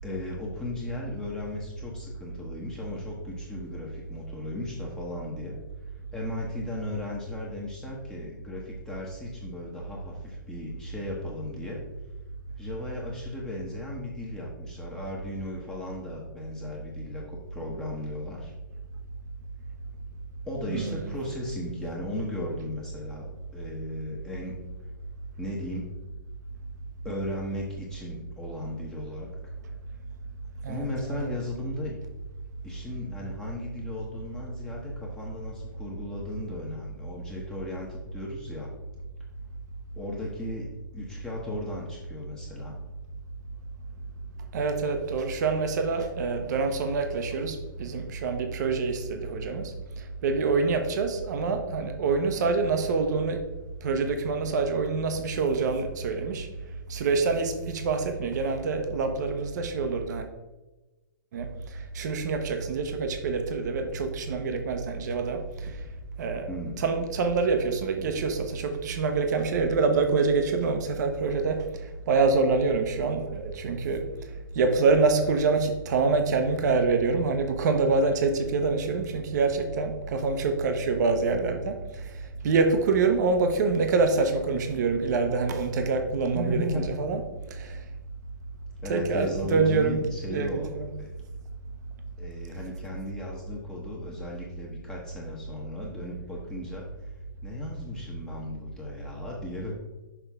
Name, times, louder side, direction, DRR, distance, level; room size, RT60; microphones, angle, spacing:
voice 1, 0.0-5.6 6.1-11.8 12.6-18.5 20.4-24.6 25.4-25.9 27.0-29.3 30.7-32.0 32.6-38.7 40.0-42.8 66.5-66.8 86.3-86.9 88.8-90.7 91.0-91.1 92.2-97.1 97.4-99.7, left 1 dB, 5° left, -4 dB, 1.0 m, -36 dB
voice 2, 20.7-21.0 30.6-30.9 31.2-31.3 44.5-53.5 53.8-56.5 56.9-60.2 61.3-65.8 66.2-66.5 66.8-74.0 74.5-87.2 87.5-87.8 88.9-90.0 90.3-90.9, right 4 dB, 55° right, 6 dB, 0.9 m, -26 dB
5.9 x 5.4 x 3.5 m, 1.1 s
hypercardioid pair, 140°, 11 cm